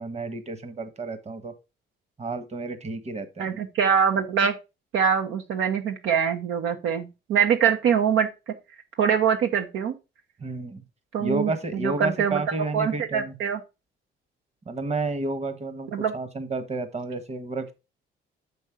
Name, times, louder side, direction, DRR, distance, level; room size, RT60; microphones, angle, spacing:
voice 1, 0.0-1.5 2.2-3.6 10.4-10.8 11.2-13.3 14.7-17.7, right 3 dB, 35° right, 1.3 m, -31 dB
voice 2, 3.4-4.5 4.9-8.5 9.0-9.9 11.1-12.4 12.7-13.6 15.9-16.1, right 7 dB, 85° right, 1.1 m, -24 dB
6.6 x 5.3 x 4.9 m
cardioid pair, 90°, 20 cm